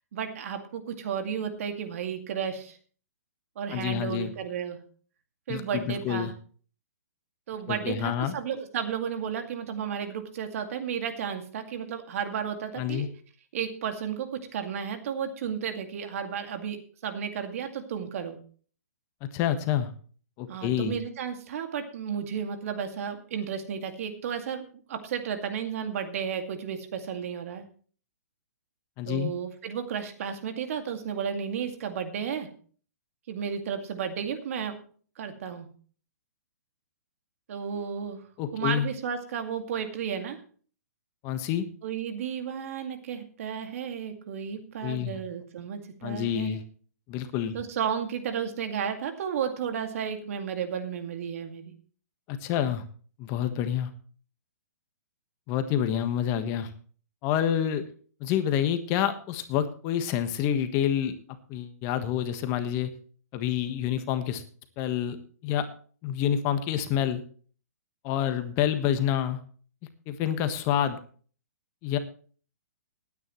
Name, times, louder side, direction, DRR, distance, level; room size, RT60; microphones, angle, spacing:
voice 1, 0.1-2.8 3.6-4.8 5.5-6.3 7.5-13.1 13.5-18.4 20.5-24.6 24.9-27.6 29.1-32.5 33.3-34.8 35.2-35.7 37.5-38.2 38.5-40.4 41.8-46.6 47.5-51.7, right 7 dB, 55° right, 6 dB, 2.2 m, -33 dB
voice 2, 3.7-4.3 5.5-6.3 7.7-8.4 12.8-13.1 19.2-19.9 20.4-21.0 29.0-29.3 38.4-38.9 41.2-41.6 44.8-45.2 46.0-46.6 47.1-47.5 52.3-52.8 53.2-53.9 55.5-56.7 57.2-57.8 58.2-61.1 61.5-62.9 63.3-64.4 64.8-65.2 65.4-65.7 66.0-67.2 68.0-69.4 70.1-71.0 71.8-72.0, left 10 dB, 30° left, 9 dB, 1.4 m, -28 dB
18.5 x 9.6 x 3.1 m, 0.43 s
hypercardioid pair, 140°, 9 cm